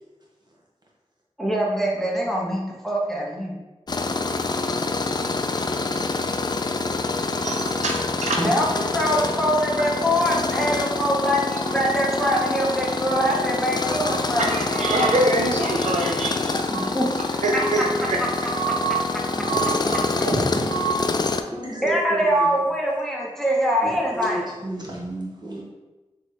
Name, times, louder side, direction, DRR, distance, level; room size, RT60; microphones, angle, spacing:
voice 1, 1.4-3.5 8.4-15.1 16.7-17.1 17.5-17.9 18.2-18.3 19.6-20.3 21.8-24.5, equal, 5° left, -2 dB, 0.9 m, -24 dB
Tools, 3.9-21.4, left 3 dB, 35° left, 0.3 m, -26 dB
voice 2, 7.4-8.4 10.6-10.7 11.2-11.3 12.3-12.5 13.2-13.4 13.9-16.9 17.4-18.2 18.5-19.0 19.5-20.3 20.7-21.1, right 3 dB, 85° right, 1 dB, 0.4 m, -26 dB
voice 3, 19.5-20.0 20.3-20.9 21.5-22.5 23.8-25.6, right 1 dB, 35° right, -4 dB, 1.4 m, -31 dB
3.9 x 3.2 x 3.2 m, 1.1 s
cardioid pair, 40°, 12 cm